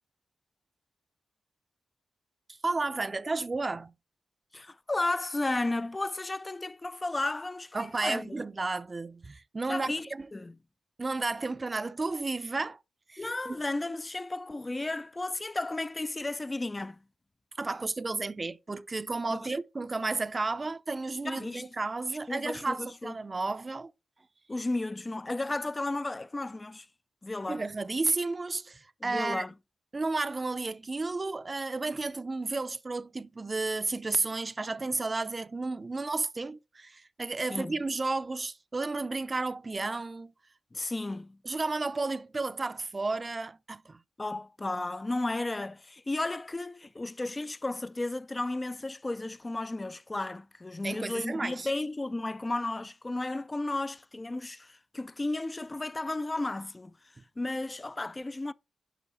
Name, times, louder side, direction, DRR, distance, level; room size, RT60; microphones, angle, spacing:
voice 1, 2.5-3.9 7.7-10.3 11.0-12.8 13.1-13.6 17.5-23.9 27.5-29.5 29.9-40.3 41.4-44.0 50.8-51.7, right 3 dB, 30° right, 0.5 m, -32 dB
voice 2, 4.5-8.4 9.7-10.5 13.2-17.0 19.3-19.5 21.2-21.7 22.3-23.1 24.5-26.9 27.2-27.6 29.0-29.5 37.5-37.7 40.7-41.4 44.2-57.0 57.4-58.5, left 2 dB, 25° left, 0.4 m, -33 dB
10.0 x 5.3 x 4.1 m
cardioid pair, 80°, 0 cm